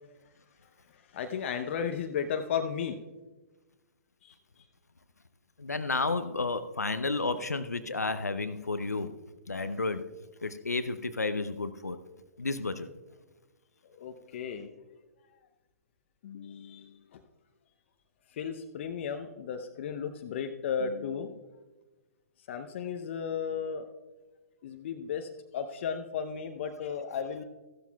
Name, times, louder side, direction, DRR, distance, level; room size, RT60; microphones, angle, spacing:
voice 1, 0.9-3.0 4.2-4.3 13.8-14.7 16.2-17.2 18.3-21.5 22.5-23.8 24.6-27.4, left 7 dB, 50° left, 6 dB, 0.8 m, -35 dB
voice 2, 5.6-9.1 9.5-10.1 10.4-12.0 12.4-12.9, left 3 dB, 85° left, 11 dB, 0.6 m, -31 dB
15.0 x 12.5 x 2.3 m, 1.2 s
figure-of-eight pair, 120°, 8 cm